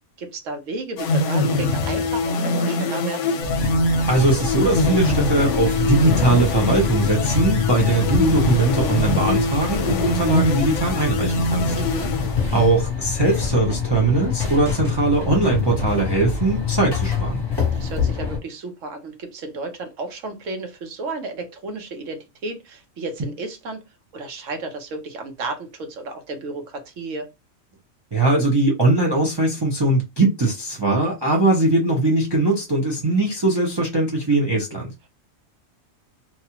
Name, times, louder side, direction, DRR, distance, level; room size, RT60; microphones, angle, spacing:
voice 1, 0.2-3.4 11.7-12.1 17.7-23.8 24.1-27.3, right 3 dB, 70° right, 1.1 m, -33 dB
sound 1, 1.0-12.8, left 2 dB, 70° left, 0.8 m, -24 dB
sound 2, 3.4-18.4, left 5 dB, 20° left, 1.0 m, -26 dB
voice 2, 4.1-11.7 12.5-17.4 28.1-34.9, right 2 dB, 30° right, 0.5 m, -20 dB
2.9 x 2.3 x 2.8 m
omnidirectional pair, 1.4 m